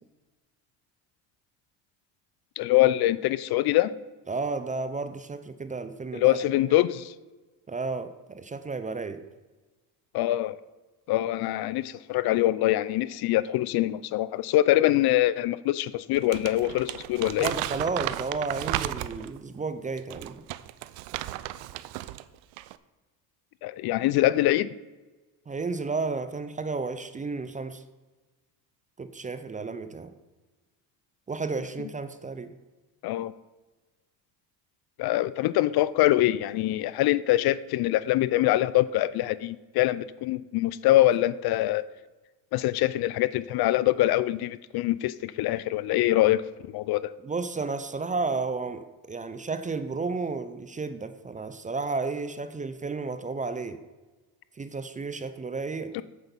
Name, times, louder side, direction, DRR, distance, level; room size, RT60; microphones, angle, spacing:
voice 1, 2.6-3.9 6.1-7.1 10.1-10.6 11.1-17.5 23.6-24.7 33.0-33.3 35.0-41.8 42.5-46.4 46.7-47.1 55.9-56.0, left 15 dB, 55° left, 17 dB, 0.5 m, -24 dB
voice 2, 4.3-6.4 6.7-6.8 7.7-9.3 17.4-20.4 25.5-27.8 29.0-30.1 31.3-32.5 47.2-53.8 54.6-56.0, right 4 dB, 15° right, 11 dB, 0.5 m, -32 dB
Crumpling crinkling, 16.1-19.4 20.0-22.2 22.5-22.8, right 15 dB, 75° right, 0.6 m, -34 dB
8.0 x 8.0 x 5.3 m, 1.2 s
supercardioid pair, 105°, 45 cm